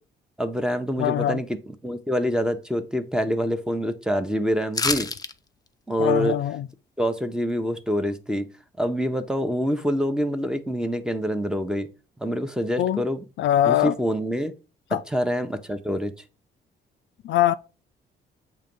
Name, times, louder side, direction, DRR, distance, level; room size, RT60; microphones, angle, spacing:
voice 1, 0.4-1.6 1.8-5.1 5.9-6.4 7.0-8.5 8.8-11.9 12.2-13.2 13.6-14.5 14.9-16.1, equal, 5° right, 0.9 m, -26 dB
voice 2, 1.0-1.4 6.0-6.7 12.8-13.0 13.4-13.9 14.9-15.0 17.2-17.5, left 12 dB, 70° left, 0.4 m, -22 dB
sound 1, 4.7-5.3 5.7-5.8, left 4 dB, 20° left, 0.6 m, -26 dB
7.3 x 2.9 x 5.3 m
cardioid pair, 90°, 20 cm